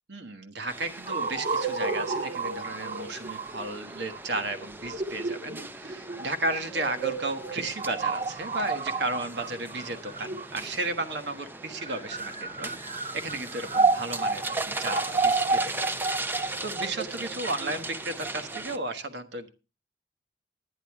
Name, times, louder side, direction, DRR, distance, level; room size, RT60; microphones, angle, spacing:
voice 1, 0.1-12.7 13.1-15.9 16.6-19.5, right 2 dB, 70° right, 8 dB, 1.2 m, -34 dB
sound 1, 0.7-18.8, right 2 dB, 10° right, 0.5 m, -39 dB
sound 2, 1.1-10.9 11.6-18.6, right 4 dB, 40° right, 1.2 m, -31 dB
10.5 x 9.9 x 4.6 m, 0.32 s
head